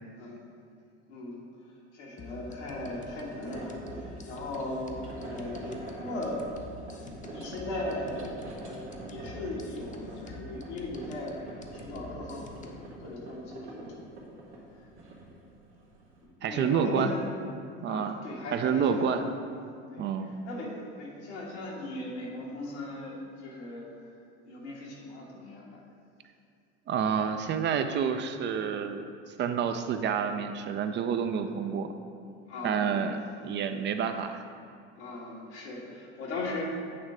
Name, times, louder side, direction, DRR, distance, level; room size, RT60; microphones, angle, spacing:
voice 1, 1.1-6.4 7.3-8.3 8.6-11.4 11.7-12.7 13.0-14.1 14.8-14.9 16.4-17.2 17.8-19.3 19.9-24.1 24.4-25.8 29.6-29.9 32.5-33.0 34.9-36.6, left 2 dB, 85° left, -4 dB, 1.6 m, -38 dB
sound 1, 2.2-13.0, left 3 dB, 25° left, 0.7 m, -47 dB
sound 2, 2.2-16.3, right 2 dB, 90° right, 1.4 m, -45 dB
voice 2, 16.4-17.1 17.8-18.2 18.5-19.3 20.0-20.3 26.9-29.0 29.4-31.9 32.6-34.4, right 7 dB, 35° right, 8 dB, 0.4 m, -29 dB
8.5 x 3.1 x 4.9 m, 2.4 s
hypercardioid pair, 85°, 33 cm